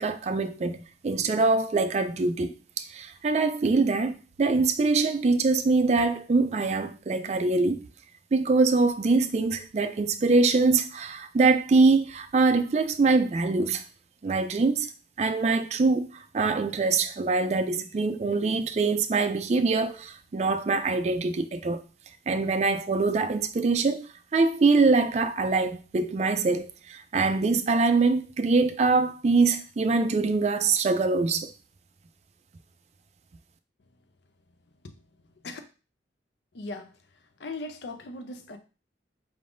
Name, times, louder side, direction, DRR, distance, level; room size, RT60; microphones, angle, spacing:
voice 1, 0.0-7.9 8.3-13.8 14.2-14.9 15.2-16.1 16.3-21.8 22.3-31.5, right 3 dB, 40° right, 0.3 m, -24 dB
voice 2, 36.5-36.9 37.4-38.6, left 2 dB, 75° left, 0.6 m, -38 dB
4.6 x 3.5 x 2.6 m
head